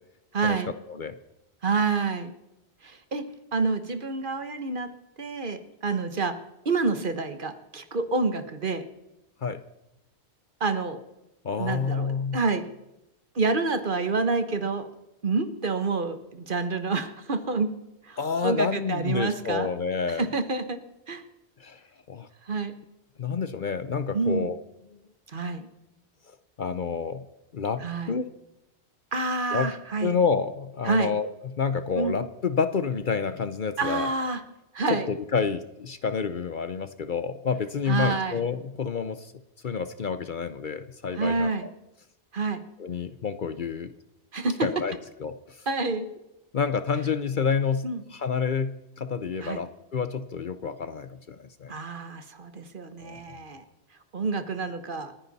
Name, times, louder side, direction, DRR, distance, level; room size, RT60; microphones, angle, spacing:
voice 1, 0.3-0.7 1.6-2.3 2.8-3.2 3.5-4.9 5.2-6.3 6.6-8.8 10.6-11.0 11.6-12.6 13.3-14.9 15.2-17.8 18.1-19.7 20.2-20.8 21.1-21.2 22.5-22.7 24.1-24.5 25.3-25.7 27.8-28.1 29.1-30.2 30.8-31.1 31.9-32.1 33.8-34.4 34.7-35.1 37.9-38.4 41.1-41.7 42.3-42.6 44.3-44.7 45.7-46.1 47.8-48.0 49.4-49.6 51.7-53.6 54.1-55.1, right 4 dB, 50° right, 10 dB, 1.3 m, -28 dB
voice 2, 11.4-12.4 18.2-20.3 21.6-21.8 22.1-22.3 23.2-24.6 24.9-25.0 26.6-27.3 27.5-28.3 29.5-29.7 30.0-34.1 34.9-39.3 39.6-41.7 42.8-43.9 44.6-45.6 46.5-51.7 53.0-53.4, left 5 dB, 50° left, 11 dB, 0.8 m, -29 dB
29.5 x 9.9 x 4.1 m, 0.93 s
omnidirectional pair, 1.1 m